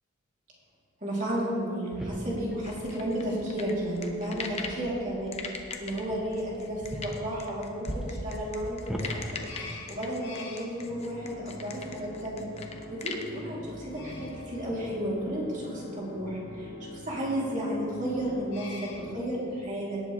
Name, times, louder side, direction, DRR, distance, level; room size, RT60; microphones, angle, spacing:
voice 1, 1.0-9.2 9.5-12.5 12.9-20.0, equal, 40° right, -5 dB, 2.8 m, -33 dB
sound 1, 1.9-9.1, equal, 5° right, 1.0 m, -41 dB
sound 2, 2.6-4.8 5.3-13.3, left 5 dB, 35° left, 0.8 m, -40 dB
sound 3, 9.0-19.1, left 1 dB, 60° left, 2.0 m, -43 dB
18.0 x 7.8 x 3.2 m, 2.5 s
head